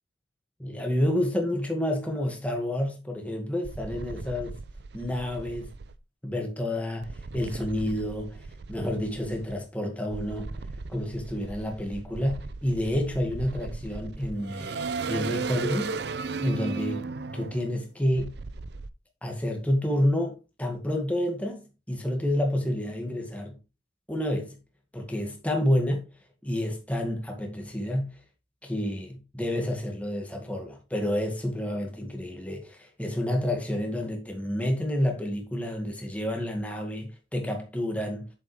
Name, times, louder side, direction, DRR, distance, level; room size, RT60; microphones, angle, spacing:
voice 1, 0.6-4.5 4.9-5.7 6.2-8.4 8.7-10.6 10.9-16.0 16.4-18.4 19.2-23.6 24.1-24.6 24.9-26.1 26.4-28.2 28.6-38.3, left 1 dB, 5° left, 1.9 m, -29 dB
sound 1, 3.6-5.9 7.0-9.6 10.1-18.9, right 4 dB, 60° right, 0.6 m, -36 dB
8.4 x 7.2 x 3.4 m
head